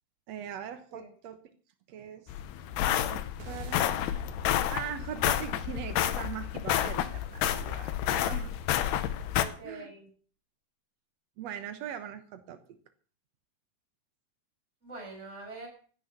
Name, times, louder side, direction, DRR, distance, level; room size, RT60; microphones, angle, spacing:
voice 1, 0.3-1.4 1.9-2.3 2.8-3.8 4.4-8.5 9.6-9.9 11.4-12.8, right 9 dB, 85° right, 9 dB, 1.4 m, -41 dB
sound 1, 2.3-9.5, left 11 dB, 80° left, 3.0 m, -30 dB
sound 2, 3.4-7.8, right 2 dB, 65° right, 3.8 m, -50 dB
voice 2, 9.3-10.1 14.8-15.7, right 2 dB, 15° right, 0 dB, 6.0 m, -44 dB
16.0 x 10.0 x 6.8 m, 0.43 s
omnidirectional pair, 4.7 m